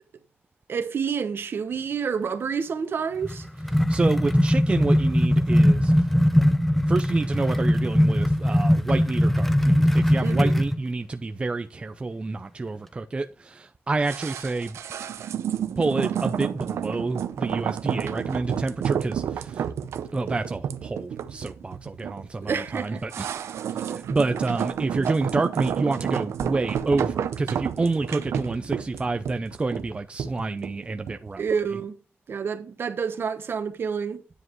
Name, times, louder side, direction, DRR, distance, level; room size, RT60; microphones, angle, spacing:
voice 1, 0.7-3.4 10.2-10.6 22.4-23.0 31.4-31.9 32.3-34.2, right 6 dB, 55° right, 1.2 m, -28 dB
sound 1, 3.2-10.8, equal, 5° left, 0.8 m, -20 dB
voice 2, 3.7-6.1 6.9-14.8 15.8-19.7 20.1-23.3 23.7-31.4, right 3 dB, 25° right, 0.6 m, -28 dB
sound 2, 14.0-31.3 31.6-31.7, right 8 dB, 90° right, 0.6 m, -30 dB
10.0 x 7.3 x 3.1 m
wide cardioid pair, 120°, 5 cm